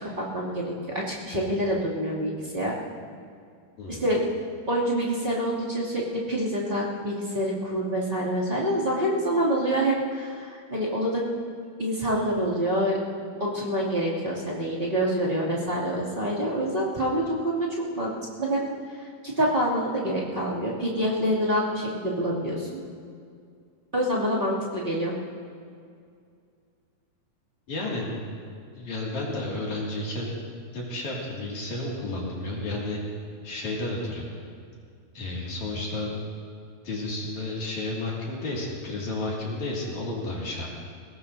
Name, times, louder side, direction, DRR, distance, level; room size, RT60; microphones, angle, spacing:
voice 1, 0.0-2.7 4.0-4.2 4.7-11.2 11.8-13.0 13.4-17.7 17.9-18.1 18.4-18.7 19.0-22.8 23.9-25.1, equal, 15° right, -7 dB, 2.0 m, -26 dB
voice 2, 27.7-28.4 28.7-30.4 30.7-33.0 33.4-34.3 35.1-36.1 36.8-40.7, left 2 dB, 50° left, -4 dB, 3.4 m, -32 dB
21.5 x 18.5 x 2.7 m, 2.3 s
omnidirectional pair, 4.5 m